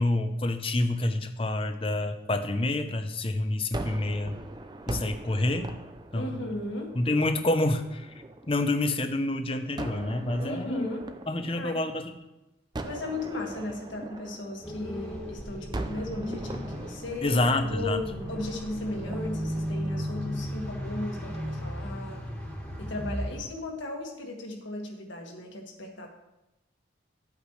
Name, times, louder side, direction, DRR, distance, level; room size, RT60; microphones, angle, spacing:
voice 1, 0.0-4.3 4.9-5.7 6.1-6.5 6.9-8.1 8.5-10.9 11.3-12.2 17.2-18.0, left 2 dB, 30° left, 8 dB, 0.6 m, -28 dB
Gunshot gunfire, 3.7-8.9 9.8-12.2 12.7-15.2 15.7-20.9, right 2 dB, 20° right, 0.5 m, -41 dB
voice 2, 6.1-6.9 10.4-11.1 11.5-11.8 12.8-22.2 22.8-26.1, left 2 dB, 80° left, 1 dB, 1.8 m, -36 dB
sound 1, 14.6-23.4, equal, 5° left, 1.7 m, -35 dB
11.5 x 8.3 x 3.2 m, 0.97 s
head